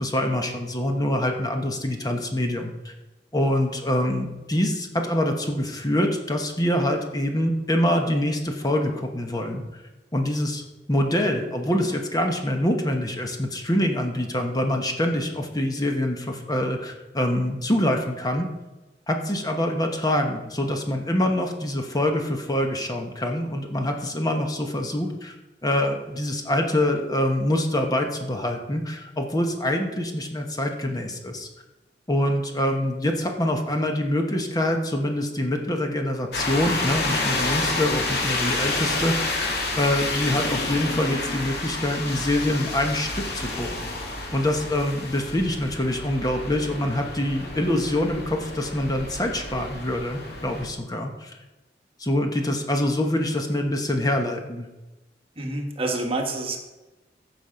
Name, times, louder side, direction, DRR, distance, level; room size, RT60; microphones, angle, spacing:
voice 1, 0.0-2.9 3.3-9.6 10.1-10.6 10.9-18.5 19.1-25.3 25.6-31.5 32.1-39.4 39.7-43.9 44.3-51.4 52.0-54.7, left 1 dB, 20° left, 3 dB, 1.2 m, -25 dB
sound 1, 36.3-50.7, left 2 dB, 65° left, 2.1 m, -29 dB
voice 2, 55.4-56.6, right 2 dB, 35° right, 3 dB, 1.5 m, -27 dB
15.5 x 6.2 x 5.1 m, 1.1 s
head